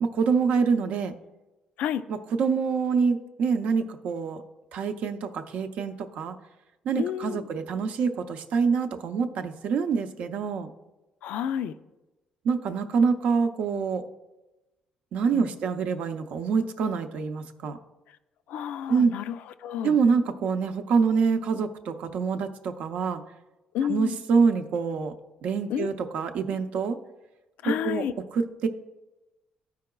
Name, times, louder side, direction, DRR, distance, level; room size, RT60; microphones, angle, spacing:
voice 1, 0.0-1.1 2.1-4.4 4.7-6.4 6.8-10.7 12.4-14.0 15.1-17.8 18.9-19.1 19.8-23.2 23.9-25.1 25.4-27.0 27.6-28.0 28.3-28.7, right 5 dB, 65° right, 7 dB, 0.6 m, -26 dB
voice 2, 7.0-7.4 11.2-11.7 15.3-15.6 18.5-20.0 23.7-24.2 25.7-25.9 27.6-28.1, left 9 dB, 80° left, 12 dB, 0.4 m, -30 dB
13.5 x 4.7 x 2.3 m, 1.0 s
cardioid pair, 145°, 2 cm